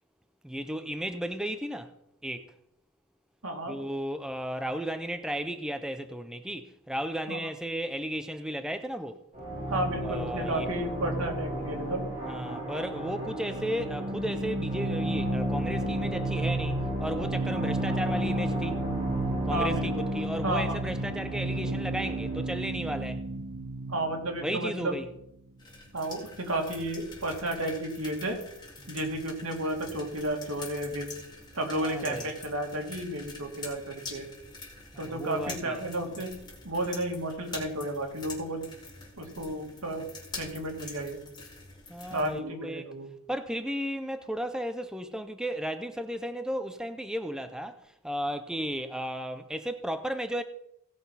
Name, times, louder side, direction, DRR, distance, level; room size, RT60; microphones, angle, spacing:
voice 1, 0.4-1.9 2.2-2.5 3.7-9.2 10.0-10.9 11.6-11.8 12.2-18.8 19.5-23.2 24.4-25.1 28.8-29.0 31.8-32.3 34.9-35.8 41.9-42.9 43.3-47.8 48.0-50.4, equal, 5° right, 0.5 m, -34 dB
voice 2, 3.4-3.8 7.3-7.4 9.7-12.1 19.5-20.0 20.4-20.8 23.9-24.9 25.9-28.4 28.9-31.1 31.5-34.3 35.0-36.3 36.6-38.7 39.2-40.0 40.4-41.2 42.1-43.1, right 1 dB, 80° right, 2.5 m, -32 dB
sound 1, 9.3-22.7, right 1 dB, 30° right, 4.7 m, -35 dB
sound 2, 12.4-25.5, right 1 dB, 65° right, 1.2 m, -33 dB
sound 3, 25.6-42.4, left 3 dB, 20° left, 3.6 m, -45 dB
17.0 x 6.0 x 5.6 m
head